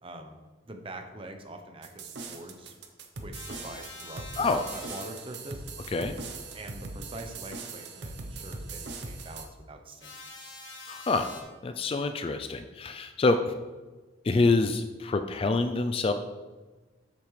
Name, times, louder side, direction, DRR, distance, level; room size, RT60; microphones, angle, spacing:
voice 1, 0.0-0.4 0.6-2.7 3.2-5.7 6.5-10.1, right 1 dB, 25° right, 5 dB, 0.7 m, -44 dB
sound 1, 1.8-9.4, right 3 dB, 55° right, 0.8 m, -40 dB
sound 2, 3.3-5.0 10.0-11.4, left 3 dB, 65° left, 1.5 m, -45 dB
voice 2, 10.9-11.3 11.6-13.5 14.2-16.1, left 3 dB, 30° left, 8 dB, 0.3 m, -26 dB
8.2 x 6.8 x 3.2 m, 1.3 s
head